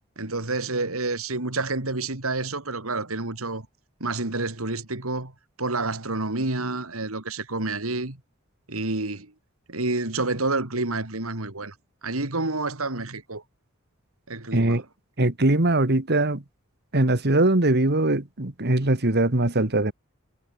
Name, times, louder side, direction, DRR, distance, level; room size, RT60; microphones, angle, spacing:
voice 1, 0.2-3.7 4.0-5.3 5.6-8.2 8.7-9.3 9.7-11.7 12.0-13.4 14.3-14.8, right 2 dB, 85° right, 3.2 m, -29 dB
voice 2, 14.5-14.8 15.2-16.4 16.9-19.9, right 2 dB, 50° right, 2.1 m, -21 dB
head